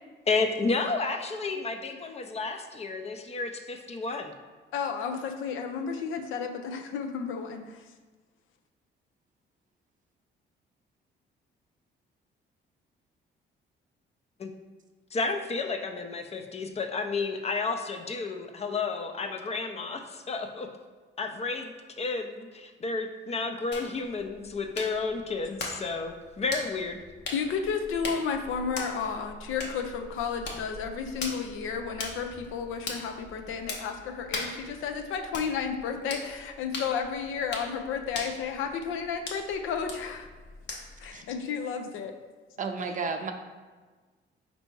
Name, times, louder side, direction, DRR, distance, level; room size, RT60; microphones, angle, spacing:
voice 1, 0.3-4.3 14.4-14.5 15.1-20.7 21.2-27.0, left 4 dB, 30° left, 6 dB, 0.5 m, -31 dB
voice 2, 4.7-7.8 27.3-40.3 41.0-42.1, left 6 dB, 85° left, 5 dB, 0.5 m, -32 dB
sound 1, 23.7-41.1, left 2 dB, 60° left, 0.9 m, -41 dB
voice 3, 42.6-43.3, right 4 dB, 40° right, 5 dB, 0.5 m, -32 dB
4.4 x 2.7 x 4.5 m, 1.4 s
cardioid pair, 90°, 20 cm